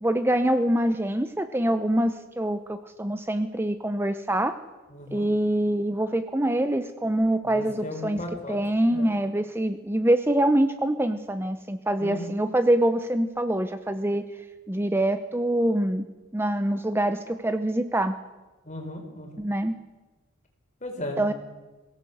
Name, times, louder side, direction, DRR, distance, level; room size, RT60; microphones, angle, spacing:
voice 1, 0.0-4.6 5.1-8.2 8.5-14.3 14.7-16.0 16.3-18.2 19.4-19.8 21.2-21.3, right 1 dB, 10° right, 9 dB, 0.7 m, -25 dB
voice 2, 4.9-5.3 7.4-8.6 8.9-9.1 12.0-12.3 18.6-19.4 20.8-21.2, left 1 dB, 35° left, 3 dB, 4.3 m, -36 dB
23.0 x 17.0 x 8.0 m, 1.2 s
head